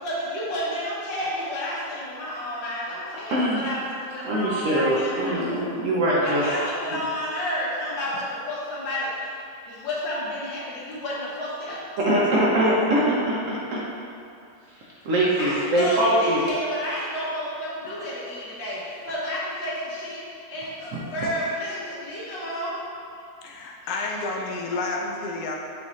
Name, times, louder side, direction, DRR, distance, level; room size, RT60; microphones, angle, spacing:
voice 1, 0.0-5.5 6.2-9.4 9.7-11.8 15.4-22.7, equal, 90° left, -7 dB, 1.7 m, -31 dB
voice 2, 3.3-3.6 4.2-6.5 12.0-13.8 15.0-16.4 20.9-21.0, right 1 dB, 70° right, -5 dB, 0.7 m, -22 dB
voice 3, 23.4-25.6, left 3 dB, 70° left, -1 dB, 0.9 m, -30 dB
6.3 x 2.5 x 3.1 m, 2.4 s
omnidirectional pair, 1.9 m